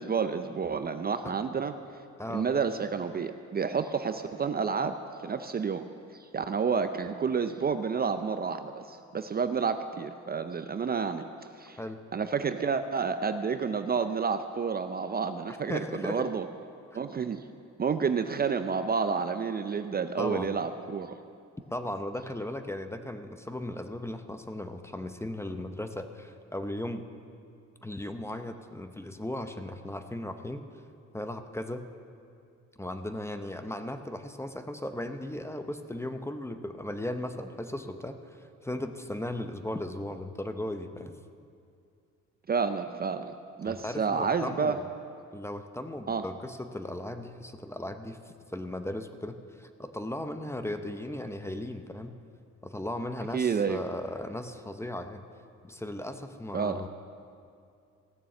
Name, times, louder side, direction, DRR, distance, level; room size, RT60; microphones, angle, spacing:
voice 1, 0.0-1.7 2.3-5.0 5.2-5.8 6.3-11.3 11.6-11.8 12.1-16.4 16.9-17.4 17.8-21.1 42.5-43.3 43.6-44.8 46.1-46.2 53.3-53.8 56.5-56.8, right 5 dB, 30° right, 9 dB, 0.5 m, -30 dB
voice 2, 15.7-16.3 20.2-20.5 21.7-27.1 27.8-30.7 31.1-31.8 32.8-41.2 43.6-44.9 45.3-48.2 48.5-52.2 52.6-55.2 55.6-56.9, left 1 dB, 10° left, 8 dB, 0.7 m, -37 dB
15.5 x 6.9 x 7.6 m, 2.4 s
cardioid pair, 90°, 30 cm